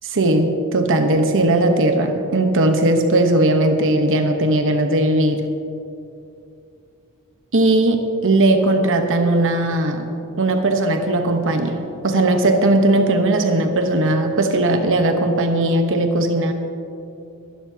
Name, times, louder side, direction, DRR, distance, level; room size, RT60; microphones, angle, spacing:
voice 1, 0.0-5.4 7.5-10.0 10.4-16.5, right 2 dB, 60° right, 5 dB, 1.0 m, -18 dB
23.0 x 11.5 x 2.8 m, 2.7 s
head